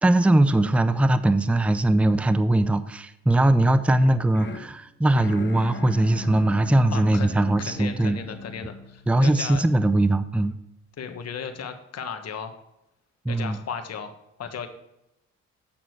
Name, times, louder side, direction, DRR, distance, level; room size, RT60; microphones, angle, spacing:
voice 1, 0.0-8.2 9.1-10.5 13.3-13.6, right 1 dB, 5° right, 12 dB, 0.5 m, -20 dB
sound 1, 4.0-10.1, left 4 dB, 40° left, 1.1 m, -39 dB
voice 2, 6.9-7.3 7.6-9.7 11.0-12.5 13.3-14.1 14.4-14.7, left 6 dB, 55° left, 7 dB, 1.4 m, -35 dB
8.7 x 6.1 x 4.7 m, 0.87 s
cardioid pair, 90°, 30 cm